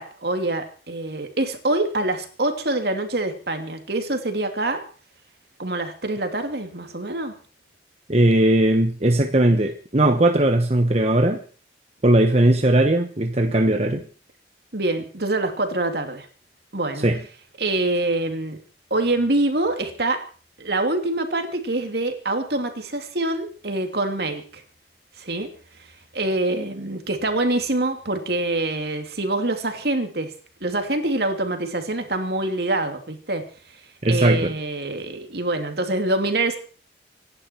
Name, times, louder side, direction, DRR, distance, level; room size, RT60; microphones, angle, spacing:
voice 1, 0.0-4.8 5.6-7.4 14.7-16.3 16.7-17.1 17.6-18.6 18.9-20.2 20.6-24.6 25.2-25.5 26.1-30.3 30.6-33.4 34.1-36.6, right 2 dB, 60° right, 5 dB, 2.8 m, -25 dB
voice 2, 8.1-11.4 12.0-14.0 17.0-17.2 34.0-34.5, right 1 dB, 35° right, 5 dB, 1.2 m, -18 dB
26.0 x 11.0 x 4.5 m, 0.40 s
head